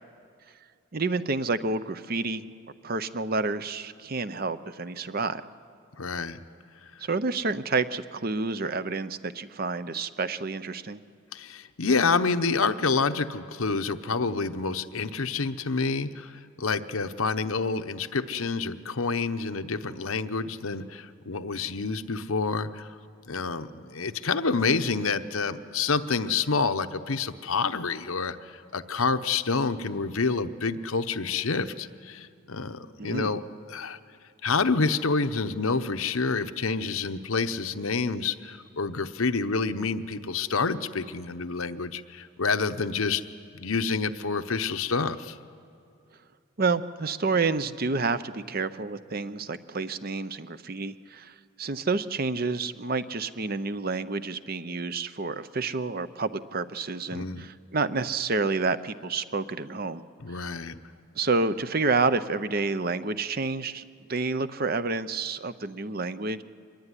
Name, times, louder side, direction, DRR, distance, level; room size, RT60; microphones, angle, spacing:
voice 1, 0.9-2.5 2.8-5.4 7.0-11.0 33.0-33.3 46.6-60.0 60.3-60.5 61.1-63.8 64.1-66.4, right 3 dB, 45° right, 12 dB, 0.7 m, -29 dB
voice 2, 6.0-6.4 11.3-22.9 23.3-33.4 33.7-34.0 34.4-43.2 43.5-45.4 57.1-57.4 60.2-60.8, left 4 dB, 75° left, 9 dB, 0.9 m, -28 dB
24.5 x 21.0 x 9.9 m, 2.4 s
head